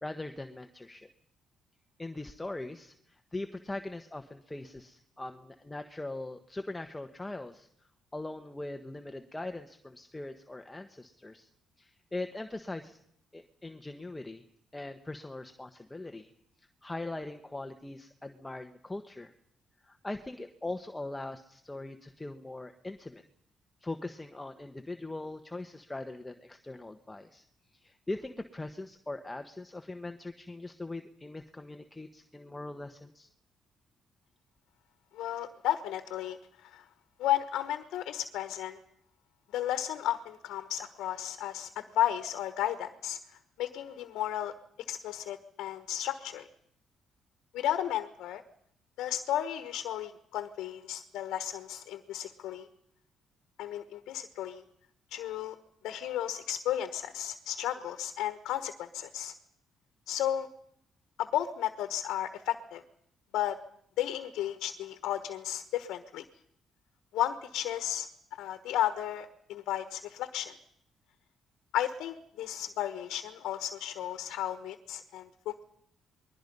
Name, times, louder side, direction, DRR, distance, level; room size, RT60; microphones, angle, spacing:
voice 1, 0.0-1.1 2.0-7.7 8.1-11.5 11.8-13.0 13.3-14.4 14.7-16.3 16.6-19.3 19.9-23.2 23.8-27.4 27.7-33.3, left 2 dB, 15° left, 7 dB, 1.2 m, -41 dB
voice 2, 35.1-36.8 37.2-38.8 39.5-43.2 43.6-44.5 44.9-46.5 47.5-48.4 49.0-52.7 53.6-54.6 55.1-55.6 55.8-59.3 60.1-60.5 61.2-62.8 63.3-63.6 64.0-66.2 67.1-68.1 68.4-70.5 71.7-75.6, left 12 dB, 90° left, 10 dB, 1.3 m, -33 dB
28.5 x 21.5 x 5.5 m, 0.67 s
cardioid pair, 90°, 0 cm